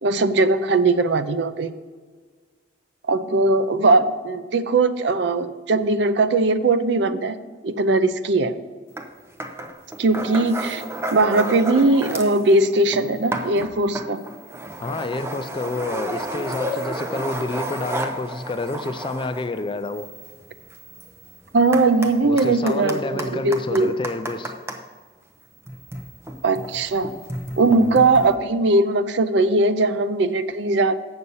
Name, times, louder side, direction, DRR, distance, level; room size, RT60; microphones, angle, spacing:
voice 1, 0.0-1.7 3.1-7.3 7.6-8.5 10.0-10.8 11.1-14.2 21.5-23.9 26.4-27.1 27.6-30.9, right 2 dB, 60° right, 12 dB, 0.5 m, -19 dB
sound 1, 9.0-9.1 9.4-12.4 12.7-24.8 25.6-28.3, right 1 dB, 15° right, 0.6 m, -32 dB
voice 2, 14.8-20.1 22.2-24.5 27.7-28.0, left 2 dB, 25° left, 10 dB, 0.3 m, -29 dB
8.1 x 6.8 x 5.5 m, 1.5 s
head